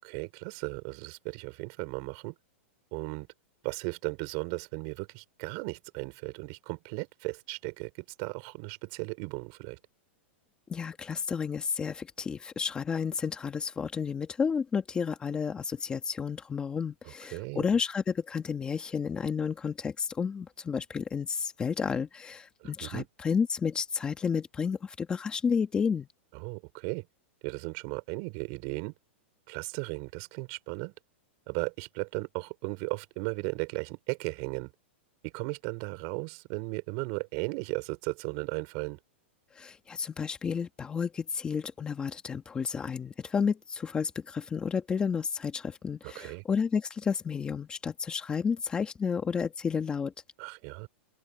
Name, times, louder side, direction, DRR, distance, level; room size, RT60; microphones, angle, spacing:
voice 1, 0.0-2.3 2.9-3.3 3.6-7.9 8.2-9.8 17.0-17.6 22.6-23.1 26.3-27.1 27.4-28.9 29.5-30.9 31.5-34.7 35.2-39.0 46.0-46.4 50.4-50.9, right 32 dB, 40° right, 5.6 m, -36 dB
voice 2, 10.7-26.1 39.6-50.1, left 6 dB, 15° left, 1.7 m, -31 dB
open air
supercardioid pair, 155°, 7 cm